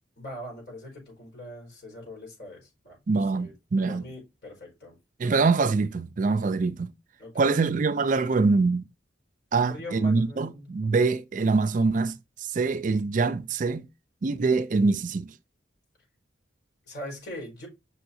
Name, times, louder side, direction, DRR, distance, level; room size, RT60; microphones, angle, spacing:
voice 1, 0.2-3.0 3.3-3.5 3.9-4.9 7.2-7.7 9.5-10.7 16.9-17.7, left 1 dB, 55° left, 4.7 m, -42 dB
voice 2, 3.1-4.0 5.2-6.9 7.4-8.8 9.5-13.9 14.2-15.3, right 4 dB, 40° right, 0.4 m, -24 dB
6.9 x 5.7 x 2.6 m
head